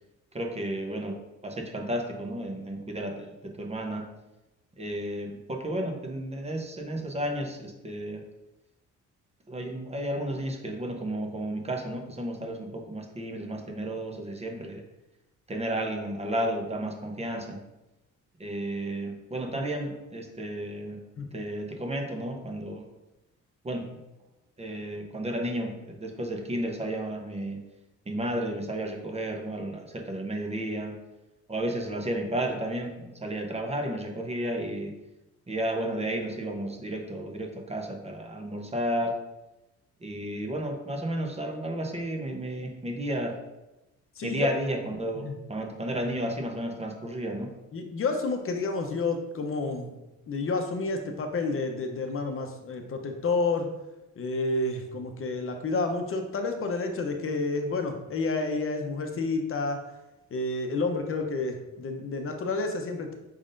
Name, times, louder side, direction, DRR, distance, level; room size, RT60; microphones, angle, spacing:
voice 1, 0.3-1.2 1.4-4.1 4.8-8.2 9.5-14.8 15.5-17.6 18.4-21.0 21.3-22.9 23.6-23.8 24.6-27.6 28.1-30.9 31.5-34.9 35.5-39.1 40.0-43.4 44.2-47.5, right 1 dB, 20° right, 2 dB, 0.8 m, -32 dB
voice 2, 47.7-49.9 50.3-53.7 54.2-59.8 60.3-63.1, left 3 dB, 45° left, 5 dB, 0.8 m, -30 dB
5.4 x 3.5 x 2.5 m, 0.98 s
cardioid pair, 90°, 30 cm